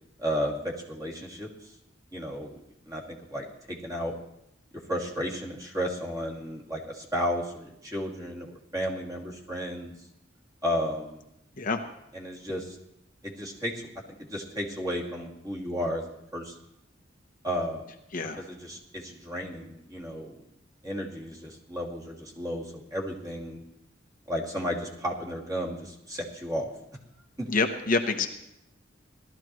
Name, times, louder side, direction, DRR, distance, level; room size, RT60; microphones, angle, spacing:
voice 1, 0.2-1.7 2.1-2.6 2.9-3.0 3.3-4.1 4.7-9.9 10.6-11.2 12.1-12.8 13.2-13.9 14.3-16.0 16.3-16.5 17.4-17.9 18.4-20.4 20.8-23.6 24.3-26.7 27.4-27.5, equal, 20° right, -2 dB, 2.3 m, -33 dB
voice 2, 27.5-28.3, left 3 dB, 45° left, 5 dB, 0.9 m, -26 dB
18.5 x 13.0 x 3.1 m, 0.82 s
head